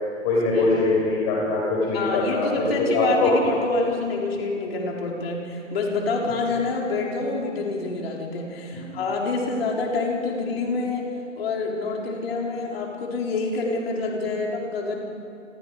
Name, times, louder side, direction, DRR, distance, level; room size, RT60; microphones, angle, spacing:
voice 1, 0.2-3.3, left 2 dB, 25° left, -3 dB, 4.9 m, -22 dB
voice 2, 1.9-15.0, left 3 dB, 50° left, -1 dB, 4.4 m, -27 dB
28.5 x 21.5 x 5.2 m, 2.5 s
hypercardioid pair, 140°, 38 cm